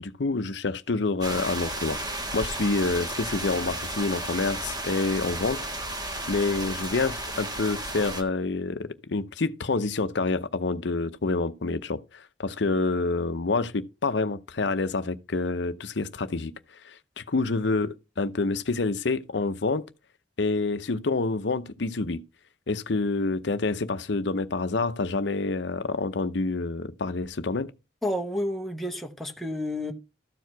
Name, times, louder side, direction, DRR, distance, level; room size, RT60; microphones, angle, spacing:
voice 1, 0.0-5.6 6.3-16.5 16.8-19.8 20.4-22.2 22.7-27.7, left 3 dB, 65° left, 0.7 m, -27 dB
sound 1, 1.2-8.2, right 1 dB, 20° right, 1.3 m, -33 dB
voice 2, 28.0-29.9, left 1 dB, ahead, 0.9 m, -30 dB
13.5 x 4.7 x 4.6 m
head